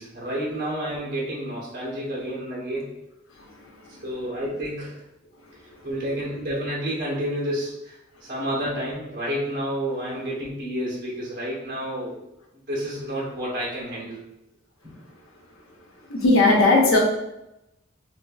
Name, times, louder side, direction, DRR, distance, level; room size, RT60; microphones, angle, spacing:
voice 1, 0.0-2.9 4.0-5.0 5.8-12.2 12.7-14.2, equal, 45° right, -5 dB, 0.9 m, -30 dB
voice 2, 3.4-4.0 16.1-17.0, left 2 dB, 90° left, 0 dB, 0.8 m, -19 dB
4.1 x 2.5 x 2.3 m, 0.89 s
head